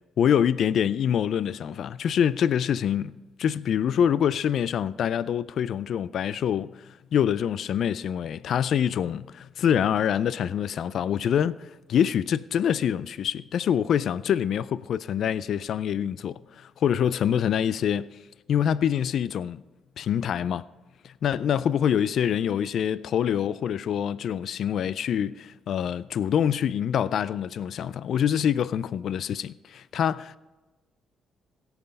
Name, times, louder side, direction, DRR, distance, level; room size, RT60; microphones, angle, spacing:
voice 1, 0.2-18.1 18.5-19.6 20.0-20.6 21.0-30.4, left 9 dB, 65° left, 0.3 m, -25 dB
17.0 x 5.8 x 5.2 m
cardioid pair, 90°, 0 cm